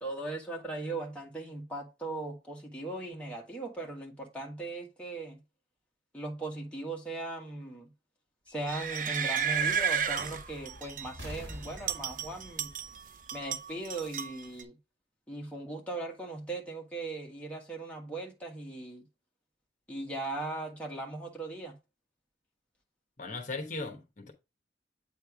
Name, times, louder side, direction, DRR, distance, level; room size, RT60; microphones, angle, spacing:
voice 1, 0.0-5.4 6.1-7.9 8.5-12.7 13.3-14.8 15.3-19.1 19.9-21.7, right 2 dB, 5° left, 1.4 m, -38 dB
sound 1, 8.5-14.2, equal, 75° right, 1.8 m, -49 dB
sound 2, 8.7-11.1 11.5-13.0 13.3-14.6, right 7 dB, 50° right, 0.6 m, -32 dB
voice 2, 23.2-24.3, left 3 dB, 45° left, 1.0 m, -38 dB
8.3 x 3.4 x 4.6 m
head